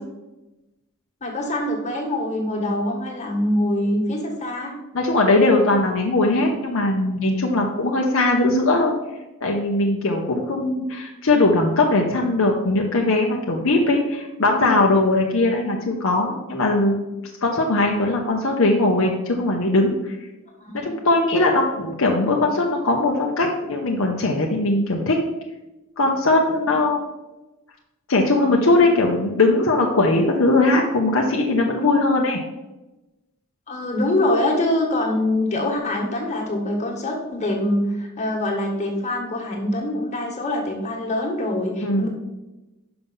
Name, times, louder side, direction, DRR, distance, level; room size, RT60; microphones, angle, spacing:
voice 1, 1.2-4.7 20.6-20.9 33.7-42.1, left 1 dB, 35° left, 0 dB, 1.6 m, -24 dB
voice 2, 4.9-8.9 9.4-17.0 17.4-20.2 20.8-25.2 26.0-27.0 28.1-32.4 41.8-42.1, left 2 dB, 65° left, 0 dB, 0.8 m, -20 dB
5.8 x 5.4 x 5.6 m, 1.0 s
head